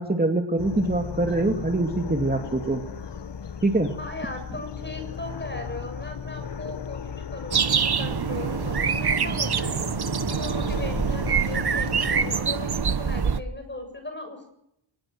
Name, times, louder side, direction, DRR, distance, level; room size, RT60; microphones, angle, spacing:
voice 1, 0.0-2.8 3.6-3.9, right 2 dB, 20° right, 3 dB, 2.4 m, -24 dB
sound 1, 0.6-12.4, left 7 dB, 55° left, 1.2 m, -36 dB
voice 2, 4.0-9.8 10.3-14.5, left 2 dB, 20° left, 7 dB, 7.4 m, -38 dB
sound 2, 7.5-13.4, right 6 dB, 50° right, 1.2 m, -25 dB
24.0 x 21.0 x 7.8 m, 0.80 s
wide cardioid pair, 110°, 49 cm